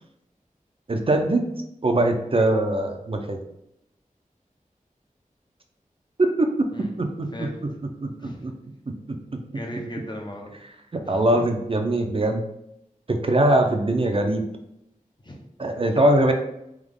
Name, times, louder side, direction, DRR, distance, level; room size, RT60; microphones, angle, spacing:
voice 1, 0.9-1.4 1.8-3.4 6.2-7.5 8.0-8.1 8.4-8.5 10.9-12.4 13.1-14.4 15.6-16.3, right 1 dB, 40° right, 4 dB, 0.6 m, -22 dB
voice 2, 9.5-10.5 11.0-11.2 15.2-15.4 15.7-15.8, equal, 30° left, 1 dB, 0.8 m, -37 dB
3.6 x 3.0 x 3.6 m, 0.80 s
wide cardioid pair, 75°, 14 cm